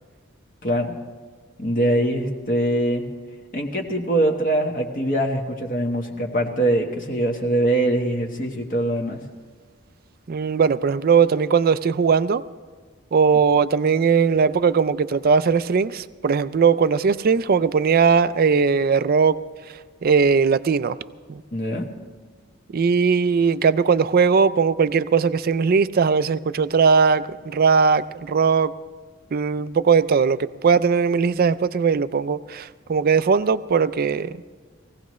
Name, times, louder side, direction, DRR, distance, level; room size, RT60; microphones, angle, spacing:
voice 1, 0.6-0.9 1.6-3.1 3.5-9.2 21.5-21.9, right 1 dB, 40° left, 1 dB, 1.2 m, -23 dB
voice 2, 10.3-12.4 13.1-19.4 20.0-21.0 21.3-21.4 22.7-28.7 29.3-34.4, right 5 dB, 45° right, 15 dB, 0.4 m, -19 dB
20.5 x 16.0 x 3.1 m, 1.5 s
head